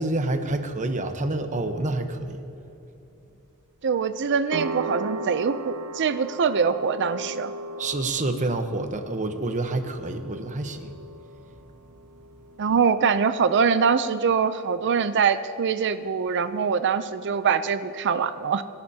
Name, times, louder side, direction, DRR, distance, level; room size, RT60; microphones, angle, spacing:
voice 1, 0.0-2.4 7.8-10.9, right 2 dB, 35° right, 7 dB, 0.9 m, -28 dB
voice 2, 3.8-7.5 12.6-18.6, right 6 dB, 55° right, 11 dB, 0.5 m, -23 dB
sound 1, 4.5-12.9, right 2 dB, 85° right, 0.8 m, -38 dB
25.5 x 11.0 x 2.8 m, 3.0 s
head